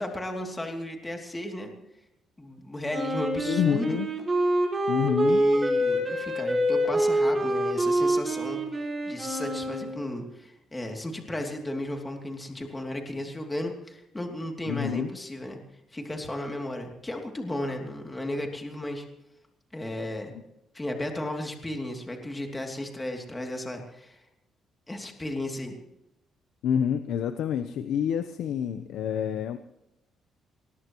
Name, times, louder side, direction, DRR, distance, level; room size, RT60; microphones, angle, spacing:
voice 1, 0.0-1.7 2.4-4.0 5.2-8.6 9.1-15.6 15.9-19.1 19.7-20.3 20.7-24.2 24.9-25.7, left 1 dB, 15° left, 2 dB, 2.9 m, -34 dB
Wind instrument woodwind instrument, 2.9-10.0, right 1 dB, 20° right, 5.2 m, -26 dB
voice 2, 3.5-4.1 4.9-5.5 14.7-15.1 26.6-29.6, left 8 dB, 80° left, 9 dB, 1.0 m, -27 dB
22.0 x 19.5 x 3.2 m, 0.87 s
cardioid pair, 130°, 0 cm